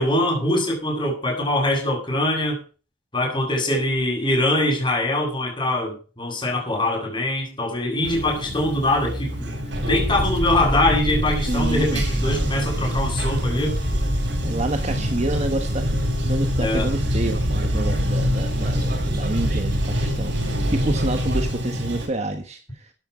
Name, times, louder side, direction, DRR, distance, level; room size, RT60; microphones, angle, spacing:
voice 1, 0.0-2.6 3.1-9.5 9.8-13.8 16.6-16.9, left 1 dB, 25° left, 1 dB, 6.3 m, -23 dB
Bathtub (filling or washing), 8.0-22.1, equal, 85° right, 6.8 m, -28 dB
sound 1, 9.7-21.5, equal, 60° right, 3.5 m, -26 dB
voice 2, 11.5-12.2 14.4-16.0 16.2-22.9, right 1 dB, 40° right, 6 dB, 1.3 m, -28 dB
14.5 x 8.8 x 5.0 m, 0.36 s
head